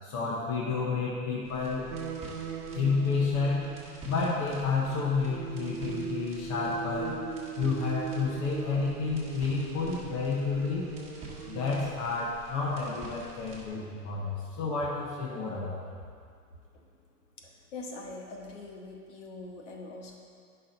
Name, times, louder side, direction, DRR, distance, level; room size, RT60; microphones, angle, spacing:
voice 1, 0.0-1.8 2.7-3.7 4.0-7.2 7.6-10.9 11.5-15.8, left 4 dB, 20° left, -6 dB, 0.7 m, -30 dB
sound 1, 1.4-13.7, right 1 dB, 15° right, 1.4 m, -49 dB
sound 2, 1.9-4.6 4.9-11.9, right 7 dB, 60° right, 0.7 m, -40 dB
voice 2, 17.4-20.2, left 2 dB, 50° left, 0 dB, 1.4 m, -43 dB
10.0 x 5.9 x 3.9 m, 2.1 s
hypercardioid pair, 165°, 47 cm